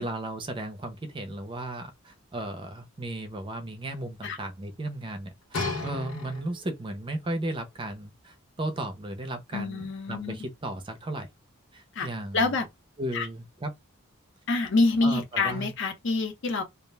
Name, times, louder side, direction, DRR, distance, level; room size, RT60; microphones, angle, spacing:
voice 1, 0.0-11.3 11.7-12.6 13.0-13.7 15.0-15.7, right 1 dB, 25° right, 0.5 m, -35 dB
sound 1, 5.5-6.8 7.6-7.7, left 3 dB, 80° left, 0.9 m, -33 dB
voice 2, 9.5-10.4 11.9-12.1 12.3-12.7 13.1-13.3 14.5-16.6, left 3 dB, 60° left, 0.6 m, -26 dB
2.3 x 2.0 x 3.2 m
head